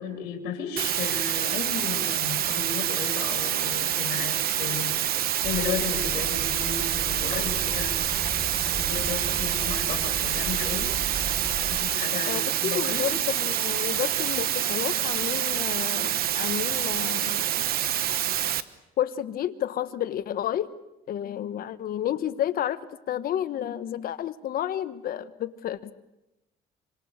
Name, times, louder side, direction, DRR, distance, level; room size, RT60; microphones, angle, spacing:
voice 1, 0.0-5.2 5.4-8.2 8.7-10.9 11.7-13.1, left 7 dB, 90° left, 2 dB, 3.4 m, -34 dB
sound 1, 0.8-18.6, right 11 dB, 65° right, 1.2 m, -27 dB
sound 2, 5.4-11.8, right 2 dB, 25° right, 7.6 m, -37 dB
voice 2, 12.3-17.7 19.0-20.7 21.1-22.8 23.1-25.9, left 11 dB, 60° left, 12 dB, 1.3 m, -31 dB
26.0 x 25.0 x 6.7 m, 0.95 s
cardioid pair, 110°, 17 cm